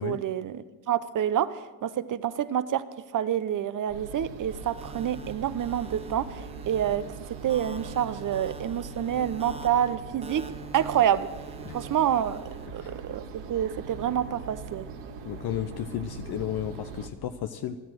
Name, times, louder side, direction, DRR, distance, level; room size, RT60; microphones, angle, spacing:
voice 1, 0.0-2.9 3.1-10.5 10.7-11.3 11.7-12.4 12.7-13.2 13.5-14.9, right 10 dB, 45° right, 14 dB, 0.9 m, -28 dB
sound 1, 3.9-17.1, right 5 dB, 65° right, 2.0 m, -41 dB
sound 2, 4.5-12.7, right 3 dB, 15° right, 0.8 m, -46 dB
voice 2, 15.2-17.8, left 10 dB, 55° left, 8 dB, 0.9 m, -33 dB
13.5 x 13.0 x 6.3 m, 1.2 s
hypercardioid pair, 65°, 45 cm